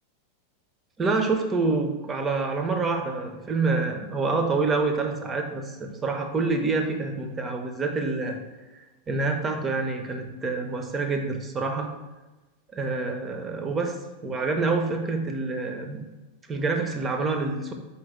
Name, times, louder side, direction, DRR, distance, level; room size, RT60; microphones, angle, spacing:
voice 1, 1.0-8.4 9.1-11.9 12.7-14.0 14.2-16.0 16.5-17.7, right 3 dB, 20° right, 5 dB, 0.5 m, -27 dB
4.3 x 2.7 x 3.5 m, 1.1 s
figure-of-eight pair, 90°, 0 cm